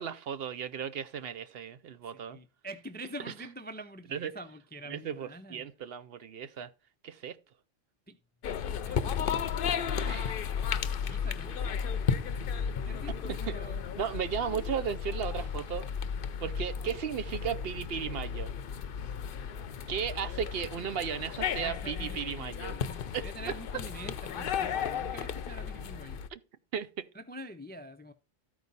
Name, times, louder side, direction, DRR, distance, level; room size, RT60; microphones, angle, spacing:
voice 1, 0.0-2.4 4.1-4.3 4.9-6.7 7.0-7.4 10.0-10.4 13.2-13.5 14.0-15.9 16.4-18.5 19.9-22.8 23.1-23.3 26.3-26.4 26.7-27.1, right 8 dB, 65° right, 0.8 m, -35 dB
voice 2, 2.1-5.7 8.1-8.2 8.8-9.6 10.1-10.3 10.8-11.7 12.1-12.3 12.8-13.8 19.8-20.2 21.6-26.2 27.1-28.1, right 1 dB, 15° left, 0.3 m, -46 dB
sound 1, 8.4-26.3, left 7 dB, 60° left, 0.7 m, -34 dB
13.5 x 4.7 x 4.0 m
omnidirectional pair, 1.2 m